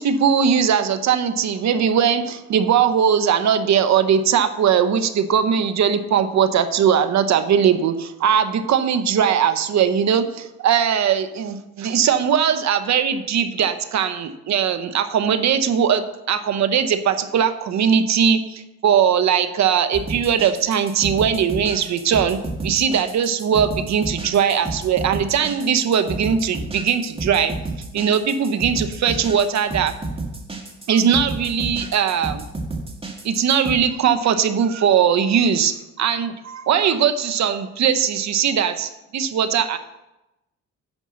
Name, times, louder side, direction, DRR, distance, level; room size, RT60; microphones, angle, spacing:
voice 1, 0.0-27.5 27.9-29.9 30.9-32.5 33.2-39.8, right 8 dB, 65° right, 10 dB, 1.0 m, -20 dB
sound 1, 19.9-33.7, right 2 dB, 20° right, 2.0 m, -30 dB
9.8 x 5.4 x 6.4 m, 0.94 s
cardioid pair, 90°, 30 cm